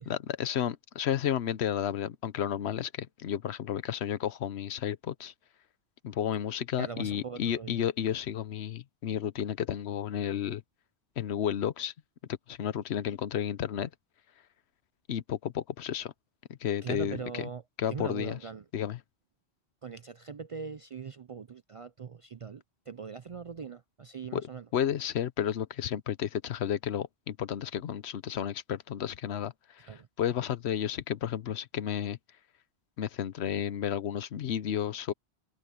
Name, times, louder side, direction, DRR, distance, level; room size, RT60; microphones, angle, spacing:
voice 1, 0.1-5.3 6.0-10.6 11.2-11.9 12.5-13.9 15.1-16.1 16.6-17.2 17.8-18.4 18.7-19.0 24.3-24.4 24.7-32.2 33.0-35.1, left 9 dB, 80° left, 1.0 m, -32 dB
voice 2, 6.8-7.8 16.8-17.6 17.9-18.6 19.8-24.7 29.9-30.1, right 6 dB, 50° right, 0.4 m, -41 dB
omnidirectional pair, 1.1 m